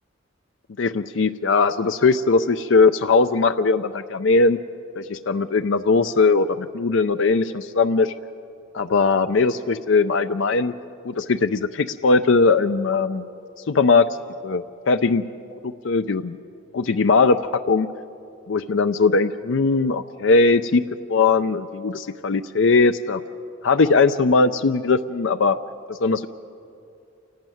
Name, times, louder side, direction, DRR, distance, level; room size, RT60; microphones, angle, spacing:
voice 1, 0.8-4.6 5.0-8.1 8.7-10.7 11.0-13.2 13.7-14.1 14.4-15.2 15.6-16.4 16.7-17.4 17.7-17.9 18.5-20.8 21.1-23.2 23.6-25.6 25.9-26.3, left 4 dB, 70° left, 10 dB, 0.5 m, -19 dB
28.5 x 12.0 x 9.2 m, 2.5 s
head